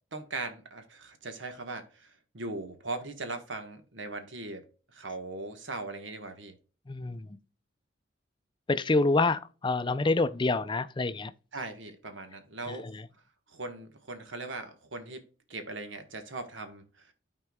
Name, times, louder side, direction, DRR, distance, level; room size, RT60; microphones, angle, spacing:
voice 1, 0.1-6.5 11.5-12.9 13.5-17.1, right 3 dB, 75° right, 1.4 m, -39 dB
voice 2, 6.9-7.3 8.7-11.3 12.7-12.9, left 3 dB, 25° left, 0.5 m, -27 dB
12.5 x 4.5 x 2.3 m
head